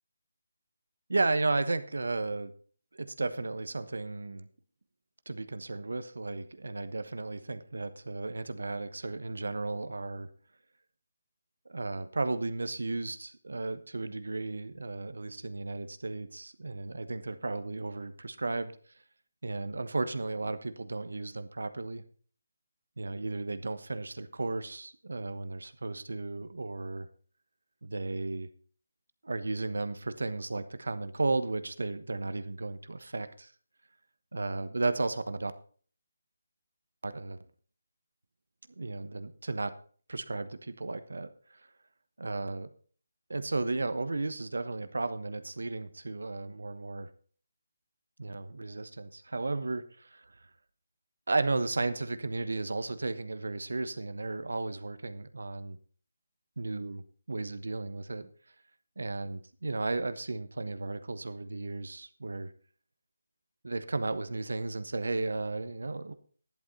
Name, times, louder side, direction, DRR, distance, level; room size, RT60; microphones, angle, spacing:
voice 1, 1.1-2.5 2.9-4.5 5.3-10.3 11.7-18.7 19.4-22.0 23.0-27.1 27.8-28.5 29.2-33.5 34.3-35.5 37.0-37.4 38.8-39.8 40.1-41.6 42.2-42.7 43.3-47.1 48.2-50.2 51.3-55.8 56.6-57.0 57.3-58.3 59.0-62.5 63.6-66.1, right 3 dB, 80° right, 11 dB, 1.1 m, -34 dB
11.5 x 11.0 x 4.1 m, 0.43 s
figure-of-eight pair, 160°, 0 cm